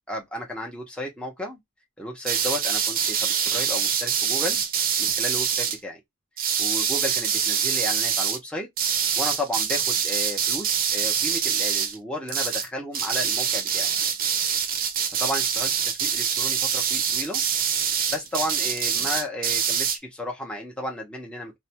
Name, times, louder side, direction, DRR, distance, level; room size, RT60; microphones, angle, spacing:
voice 1, 0.1-1.6 2.0-4.6 5.0-6.0 6.6-8.7 9.2-13.9 15.2-17.4 18.1-21.6, left 1 dB, 5° left, 0.8 m, -33 dB
sound 1, 2.2-5.8 6.4-8.4 8.8-12.0 12.3-12.7 12.9-20.0, right 7 dB, 45° right, 0.6 m, -25 dB
2.5 x 2.1 x 2.8 m
head